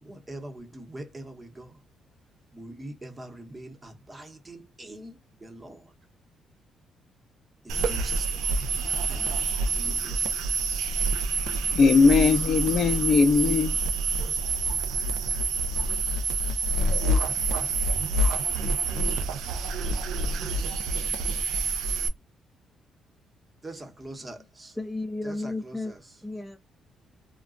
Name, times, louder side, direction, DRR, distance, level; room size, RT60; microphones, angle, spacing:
voice 1, 0.0-1.8 2.5-5.9 7.6-8.5 9.1-9.4 9.7-10.5 23.6-24.8 25.2-26.1, right 1 dB, 25° right, 0.9 m, -43 dB
sound 1, 7.7-22.1, right 3 dB, 85° right, 0.4 m, -27 dB
voice 2, 11.7-13.9, left 5 dB, 60° left, 0.4 m, -20 dB
voice 3, 24.8-25.9 26.2-26.6, left 2 dB, 5° left, 0.4 m, -33 dB
2.3 x 2.2 x 3.7 m
cardioid pair, 90°, 0 cm